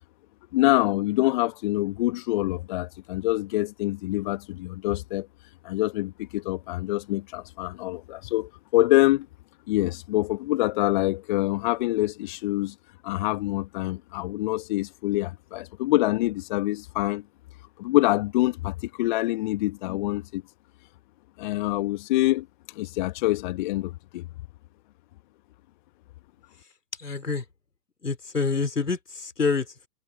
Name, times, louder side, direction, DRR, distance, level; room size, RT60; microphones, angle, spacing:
voice 1, 0.5-5.3 5.6-9.3 9.7-12.7 13.0-17.2 17.8-20.4 21.4-24.2, left 18 dB, 30° left, 1.0 m, -25 dB
voice 2, 27.0-27.5 28.0-29.9, left 4 dB, 80° left, 4.2 m, -27 dB
figure-of-eight pair, 120°, 47 cm